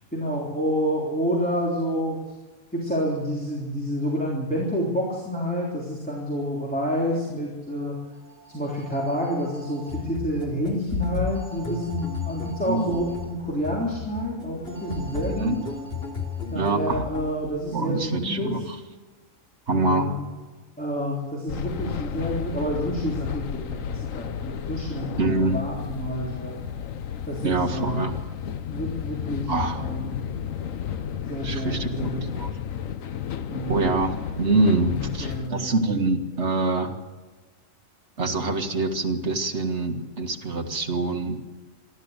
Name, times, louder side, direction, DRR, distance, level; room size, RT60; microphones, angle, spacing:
voice 1, 0.1-2.2 2.7-8.0 8.5-15.6 16.5-18.5 19.7-20.3 20.8-26.6 27.3-28.1 28.7-30.2 31.3-32.2 33.5-33.9 34.8-35.7, equal, 5° left, -4 dB, 3.4 m, -29 dB
sound 1, 8.0-10.0 11.3-13.3 14.7-16.7, right 4 dB, 30° right, 5.6 m, -46 dB
sound 2, 9.9-17.5, left 5 dB, 50° left, 3.2 m, -33 dB
voice 2, 12.6-13.2 15.3-15.6 16.5-17.1 17.7-18.8 19.7-20.2 25.2-25.6 27.4-28.2 29.5-29.9 31.4-32.5 33.6-37.0 38.2-41.4, right 3 dB, 55° right, 2 dB, 2.2 m, -25 dB
sound 3, 21.5-35.5, left 8 dB, 75° left, 1.3 m, -32 dB
27.0 x 12.0 x 8.1 m, 1.3 s
omnidirectional pair, 1.4 m